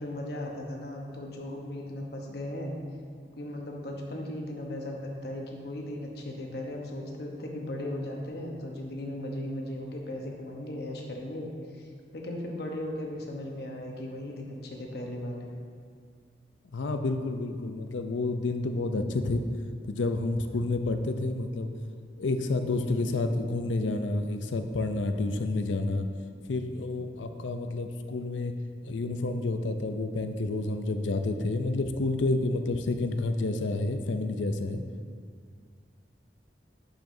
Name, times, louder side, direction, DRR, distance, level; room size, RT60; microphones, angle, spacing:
voice 1, 0.0-2.8 3.3-11.5 11.8-11.9 12.1-15.5, left 1 dB, 60° left, 0 dB, 1.0 m, -37 dB
voice 2, 16.7-19.4 19.9-21.7 22.2-26.1 26.5-28.5 28.8-34.8, left 2 dB, 90° left, 7 dB, 0.5 m, -29 dB
8.9 x 6.9 x 2.7 m, 2.1 s
head